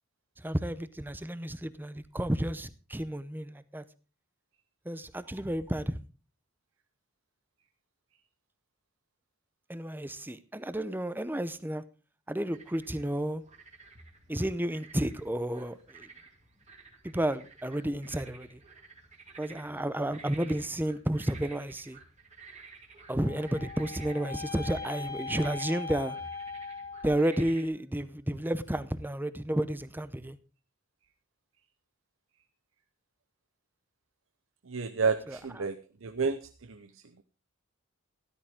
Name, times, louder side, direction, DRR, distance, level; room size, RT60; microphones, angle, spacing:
voice 1, 0.4-3.8 4.8-6.0 9.7-11.8 12.3-13.4 14.3-16.1 17.0-18.6 19.4-22.0 23.1-26.2 27.0-30.4 35.3-35.4, right 1 dB, 10° right, 0.7 m, -32 dB
sound 1, 12.5-27.7, right 4 dB, 35° right, 2.4 m, -53 dB
sound 2, 23.1-27.4, left 4 dB, 45° left, 2.5 m, -40 dB
voice 2, 34.7-37.2, right 5 dB, 75° right, 0.8 m, -31 dB
13.0 x 13.0 x 3.6 m
head